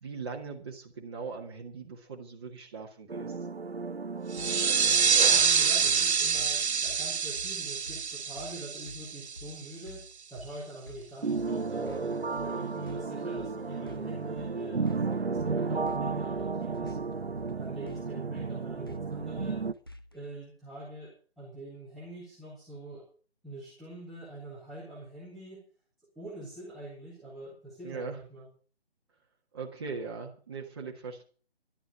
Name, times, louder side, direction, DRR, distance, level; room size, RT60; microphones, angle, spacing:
voice 1, 0.0-3.4 27.8-28.2 29.5-31.2, right 4 dB, 25° right, -1 dB, 1.5 m, -40 dB
sound 1, 3.1-6.5 6.7-6.8 11.2-19.7, right 4 dB, 65° right, 0.9 m, -33 dB
sound 2, 4.3-9.7, right 6 dB, 90° right, 0.5 m, -26 dB
sound 3, 4.4-20.3, left 1 dB, 20° left, 0.5 m, -49 dB
voice 2, 5.2-10.0 10.3-17.0 17.5-19.6 20.1-23.0 23.4-25.6 26.1-28.5, right 1 dB, ahead, -11 dB, 1.7 m, -45 dB
11.5 x 8.0 x 7.5 m, 0.41 s
figure-of-eight pair, 150°, 33 cm